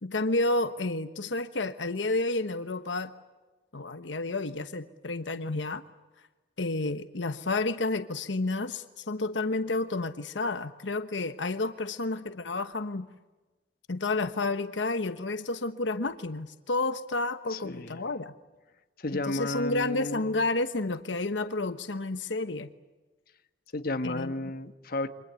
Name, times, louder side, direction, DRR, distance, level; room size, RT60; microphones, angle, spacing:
voice 1, 0.0-3.1 3.7-5.8 6.6-13.1 13.9-18.3 19.1-22.7 24.0-24.3, left 2 dB, 85° left, 10 dB, 1.2 m, -30 dB
voice 2, 17.5-18.0 19.0-20.3 23.7-25.1, left 2 dB, 55° left, 8 dB, 1.5 m, -33 dB
28.5 x 24.5 x 8.3 m, 1.2 s
head